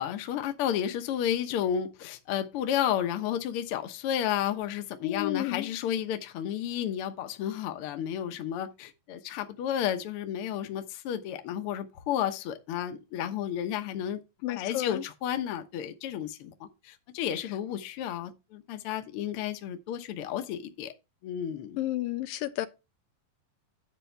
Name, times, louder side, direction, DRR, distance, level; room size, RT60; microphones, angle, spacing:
voice 1, 0.0-14.2 14.5-20.9 21.2-21.8, left 10 dB, 70° left, 1.4 m, -32 dB
voice 2, 5.0-5.7 14.4-15.0 21.8-22.7, left 15 dB, 90° left, 2.4 m, -31 dB
9.8 x 6.8 x 3.4 m
omnidirectional pair, 3.9 m